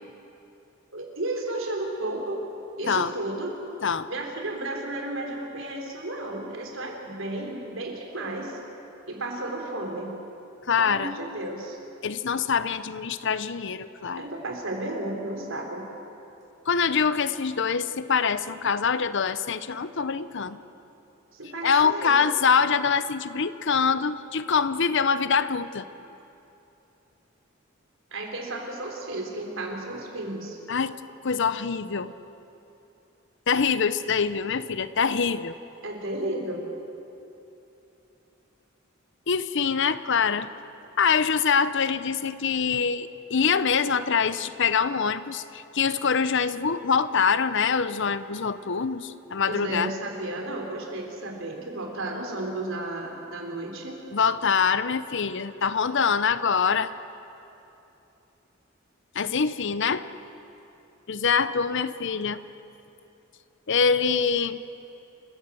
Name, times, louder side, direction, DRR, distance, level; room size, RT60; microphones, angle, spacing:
voice 1, 0.9-2.4 2.8-3.5 4.1-8.6 9.1-10.1 10.8-11.8 14.1-15.8 21.3-22.3 28.1-30.6 35.8-36.6 49.4-54.0, right 2 dB, 70° right, 1 dB, 4.1 m, -33 dB
voice 2, 10.7-11.1 12.0-14.3 16.7-20.6 21.6-25.9 30.7-30.9 31.2-32.1 33.5-35.6 39.3-40.5 41.0-49.9 54.1-56.9 59.1-60.0 61.1-62.4 63.7-64.6, left 6 dB, 65° left, 14 dB, 0.8 m, -24 dB
28.0 x 16.0 x 7.9 m, 2.9 s
head